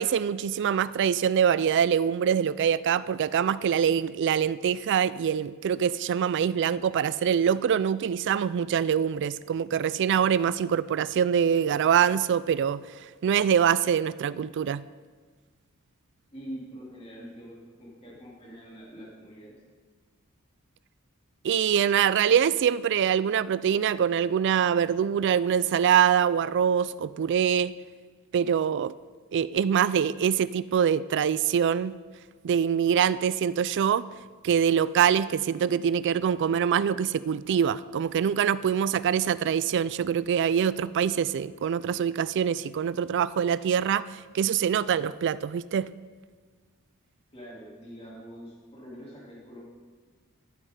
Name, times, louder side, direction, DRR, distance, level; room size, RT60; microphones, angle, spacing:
voice 1, 0.0-12.8 13.2-14.8 21.4-27.7 28.3-28.9 29.3-31.9 32.4-34.0 34.4-45.9, right 8 dB, 55° right, 17 dB, 0.3 m, -24 dB
voice 2, 16.3-19.6 47.3-49.6, equal, 25° left, -5 dB, 3.0 m, -44 dB
12.5 x 12.0 x 3.8 m, 1.5 s
head